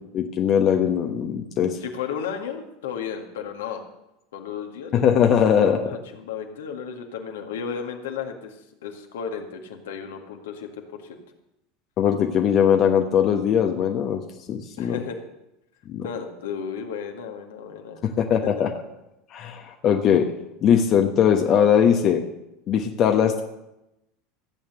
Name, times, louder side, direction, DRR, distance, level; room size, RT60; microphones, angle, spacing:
voice 1, 0.1-1.8 4.9-5.8 12.0-14.2 14.5-15.0 15.9-16.1 18.2-18.7 19.3-20.3 20.6-22.2 22.7-23.4, left 8 dB, 40° left, 4 dB, 1.2 m, -20 dB
voice 2, 1.8-3.8 4.3-5.0 5.6-11.2 14.8-15.2 16.0-18.1, left 7 dB, 65° left, 3 dB, 1.8 m, -34 dB
15.0 x 8.8 x 6.7 m, 0.90 s
figure-of-eight pair, 75°, 0 cm